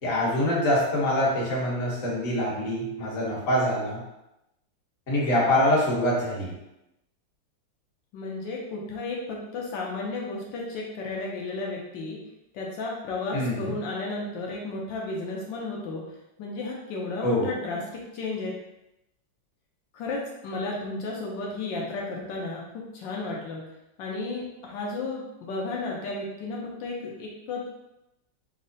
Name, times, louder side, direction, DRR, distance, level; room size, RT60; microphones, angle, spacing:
voice 1, 0.0-4.0 5.1-6.5 13.3-13.7 17.2-17.5, left 1 dB, 45° left, -6 dB, 1.4 m, -25 dB
voice 2, 8.1-12.2 12.5-16.0 16.4-18.5 19.9-23.6 24.0-27.7, left 3 dB, 85° left, -3 dB, 1.4 m, -33 dB
3.6 x 2.1 x 3.9 m, 0.90 s
omnidirectional pair, 2.0 m